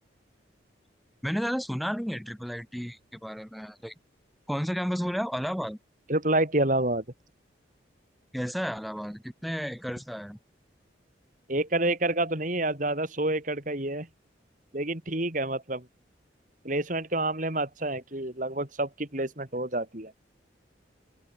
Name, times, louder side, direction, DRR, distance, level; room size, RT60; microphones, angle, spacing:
voice 1, 1.2-3.9 4.5-5.8 8.3-10.4, equal, ahead, 5.2 m, -32 dB
voice 2, 6.1-7.0 11.5-14.1 14.7-15.8 16.6-20.1, right 2 dB, 45° right, 3.2 m, -28 dB
open air
head